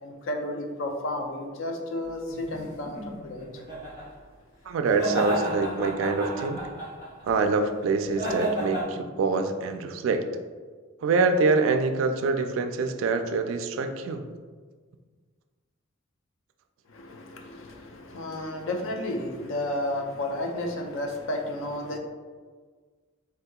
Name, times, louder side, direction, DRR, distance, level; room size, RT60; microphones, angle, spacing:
voice 1, 0.0-3.5 16.9-22.0, left 1 dB, 70° left, 3 dB, 0.4 m, -32 dB
sound 1, 2.3-4.1 4.9-7.2 8.1-8.8, right 1 dB, 40° left, 1.3 m, -32 dB
voice 2, 4.7-6.6 7.3-10.2 11.0-14.2, right 4 dB, 75° right, 7 dB, 0.3 m, -25 dB
3.5 x 2.7 x 2.2 m, 1.5 s
head